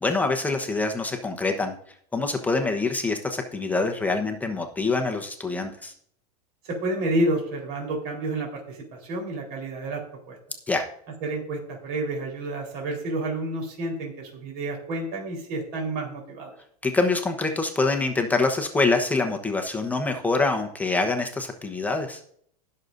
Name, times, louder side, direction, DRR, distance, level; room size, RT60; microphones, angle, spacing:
voice 1, 0.0-1.8 2.1-5.9 10.7-10.8 16.8-22.2, left 3 dB, 10° left, 3 dB, 1.0 m, -25 dB
voice 2, 6.6-10.4 11.2-16.5, right 2 dB, 50° right, 1 dB, 4.1 m, -30 dB
19.5 x 6.6 x 2.6 m, 0.64 s
supercardioid pair, 140°, 21 cm